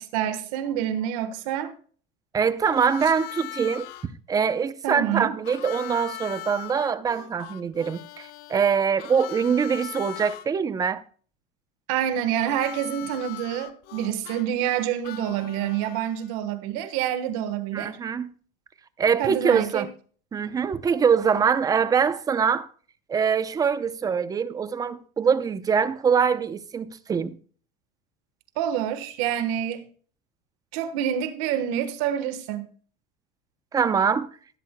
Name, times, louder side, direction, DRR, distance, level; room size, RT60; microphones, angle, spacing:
voice 1, 0.0-1.7 4.8-5.3 11.9-17.9 19.2-19.8 28.6-29.9 30.7-32.7, right 10 dB, 70° right, 1.3 m, -27 dB
voice 2, 2.3-3.9 4.3-11.0 17.7-18.3 19.0-19.9 20.3-22.7 23.1-27.3 33.7-34.3, right 6 dB, 20° right, 0.6 m, -23 dB
Harmonica, 2.6-4.1 5.4-10.5 12.4-16.3, left 16 dB, 60° left, 1.0 m, -40 dB
15.0 x 13.0 x 2.2 m
cardioid pair, 150°, 19 cm